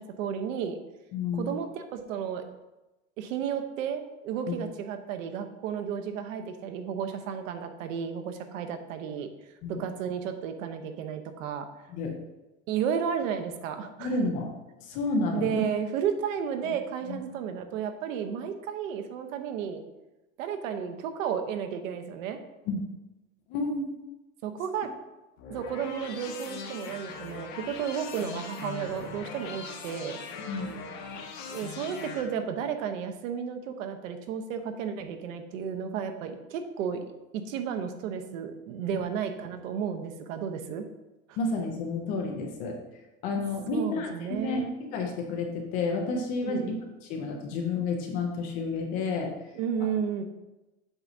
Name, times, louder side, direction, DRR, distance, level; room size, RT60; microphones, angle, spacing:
voice 1, 0.2-0.8 1.3-2.4 3.2-9.3 9.8-11.7 12.7-14.1 15.3-19.8 20.4-22.4 24.4-24.9 25.5-30.2 31.5-37.0 37.3-40.8 43.7-44.7 46.4-46.8 49.5-50.2, right 7 dB, 90° right, 7 dB, 0.9 m, -33 dB
voice 2, 1.1-1.5 4.5-4.6 9.6-9.8 11.9-12.1 14.0-14.5 14.8-15.6 16.6-16.7 17.1-17.2 22.7-22.8 23.5-23.9 30.4-30.7 38.9-39.0 41.4-42.8 43.2-49.3, left 3 dB, 25° left, 2 dB, 0.3 m, -30 dB
sound 1, 25.4-32.2, left 5 dB, 60° left, 1.4 m, -40 dB
7.9 x 2.7 x 5.9 m, 1.0 s
supercardioid pair, 180°, 38 cm